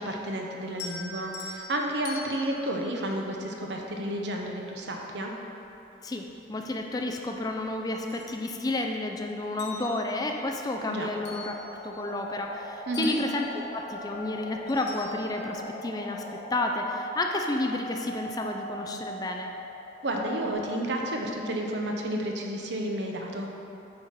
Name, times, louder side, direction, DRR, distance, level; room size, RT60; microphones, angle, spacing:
voice 1, 0.0-5.3 10.9-11.1 12.9-13.1 20.0-23.5, right 1 dB, 80° right, 1 dB, 0.8 m, -31 dB
sound 1, 0.7-4.0 5.6-5.7 6.3-7.5 7.8-9.1 9.4-12.6 12.9-15.6, left 3 dB, 70° left, 0.8 m, -45 dB
voice 2, 6.0-16.2 16.5-19.5, left 2 dB, 20° left, 3 dB, 0.4 m, -31 dB
sound 2, 10.7-20.5, equal, 55° left, 1.6 m, -41 dB
8.5 x 4.2 x 4.7 m, 2.8 s
head